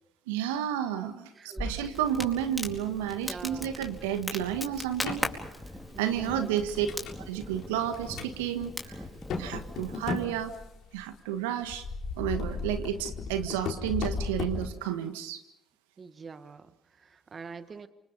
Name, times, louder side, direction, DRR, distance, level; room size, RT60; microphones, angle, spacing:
voice 1, 0.3-5.3 6.0-6.9 7.3-9.0 9.4-10.5 10.9-11.8 12.2-15.4, right 10 dB, 80° right, 9 dB, 1.6 m, -31 dB
voice 2, 1.3-1.8 3.2-3.7 5.9-6.6 16.0-17.9, right 5 dB, 40° right, 12 dB, 1.5 m, -45 dB
Crackle, 1.6-10.2, left 1 dB, 5° left, 4.5 m, -39 dB
sound 1, 4.9-5.3 5.9-7.2 7.6-8.3 8.6-8.7 9.0-11.0 11.6-14.7, left 5 dB, 60° left, 4.1 m, -36 dB
28.5 x 26.5 x 5.4 m, 0.85 s
hypercardioid pair, 50°, 0 cm